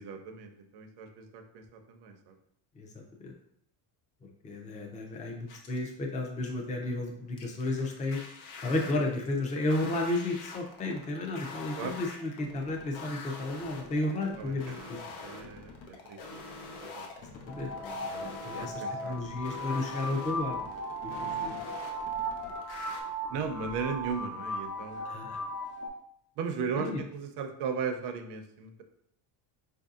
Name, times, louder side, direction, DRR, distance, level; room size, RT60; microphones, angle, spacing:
voice 1, 0.0-2.3 11.8-12.0 14.4-16.4 16.7-17.1 18.6-19.3 21.3-21.6 23.3-25.2 26.4-28.8, right 5 dB, 65° right, 5 dB, 0.6 m, -37 dB
voice 2, 4.4-8.2 8.6-15.0 17.5-18.7 19.0-20.7 21.2-21.5 25.0-25.4 26.8-27.0, left 2 dB, 15° left, 1 dB, 0.4 m, -33 dB
sound 1, 5.5-5.9 7.4-23.0, left 3 dB, 85° left, 0.8 m, -45 dB
sound 2, 17.5-25.9, right 1 dB, 55° left, 0.9 m, -37 dB
4.6 x 2.7 x 2.4 m, 0.73 s
cardioid pair, 130°, 45 cm